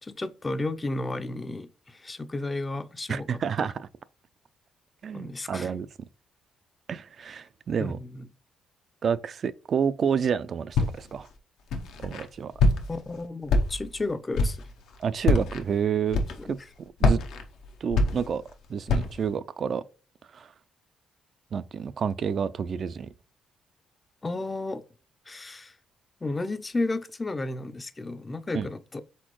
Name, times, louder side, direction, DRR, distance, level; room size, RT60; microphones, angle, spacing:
voice 1, 0.0-3.3 3.6-3.7 5.1-5.7 7.8-8.3 12.9-14.6 16.4-16.5 24.2-24.8 25.3-25.8 26.2-29.0, left 2 dB, 25° left, 0.4 m, -33 dB
voice 2, 3.1-3.9 5.0-5.9 6.9-8.0 9.0-11.3 12.0-12.5 15.0-16.2 16.5-16.6 17.0-17.2 17.8-18.4 18.7-19.8 20.3-20.5 21.5-23.1 28.5-28.7, right 7 dB, 50° right, 0.3 m, -29 dB
Walk footsteps, 10.7-11.2 11.7-12.2 12.6-13.1 13.5-14.0 14.3-14.7 15.2-15.6 16.1-16.6 17.0-18.5 18.9-19.3, left 2 dB, 80° left, 0.7 m, -24 dB
4.2 x 3.9 x 3.0 m
cardioid pair, 90°, 0 cm